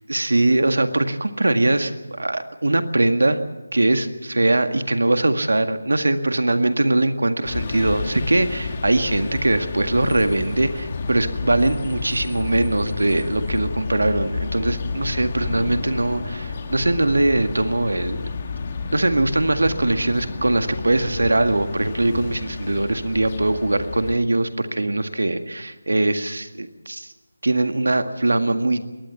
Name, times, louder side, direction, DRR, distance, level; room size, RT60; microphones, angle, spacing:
voice 1, 0.1-3.4 3.7-18.3 18.9-27.1 27.4-28.8, right 2 dB, 75° right, 9 dB, 1.9 m, -21 dB
sound 1, 7.4-24.1, left 4 dB, 35° left, 2.3 m, -31 dB
22.0 x 19.0 x 7.2 m, 1.2 s
figure-of-eight pair, 160°, 0 cm